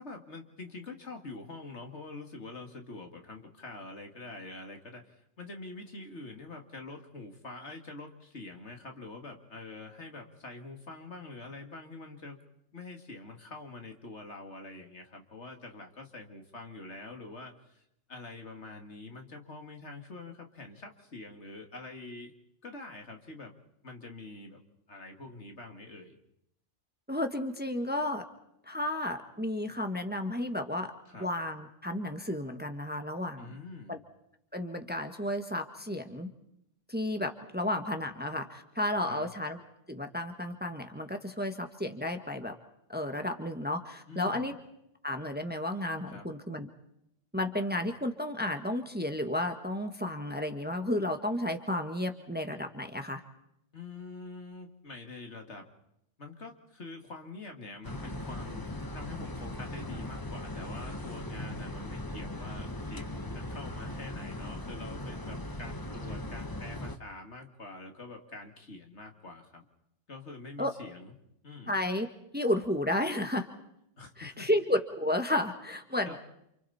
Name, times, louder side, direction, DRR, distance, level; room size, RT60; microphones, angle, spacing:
voice 1, 0.0-12.4 12.7-17.8 18.1-22.3 22.6-23.5 23.8-24.6 24.9-26.2 31.1-31.3 33.4-34.0 39.1-39.3 44.1-44.5 46.1-46.3 53.7-55.7 56.2-69.6 70.1-71.1 71.4-71.8 74.0-74.5 76.0-76.2, left 3 dB, 70° left, 3 dB, 2.8 m, -45 dB
voice 2, 27.1-28.2 28.7-30.9 31.2-33.5 33.9-34.0 34.5-36.3 36.9-39.6 39.9-42.5 42.9-44.5 45.0-46.7 47.3-53.2 70.6-70.7 71.7-72.1 72.3-73.5 74.2-76.1, left 1 dB, 10° right, 5 dB, 1.5 m, -32 dB
sound 1, 57.8-67.0, left 1 dB, 20° left, 1.1 m, -39 dB
29.0 x 28.5 x 4.3 m, 0.78 s
omnidirectional pair, 1.2 m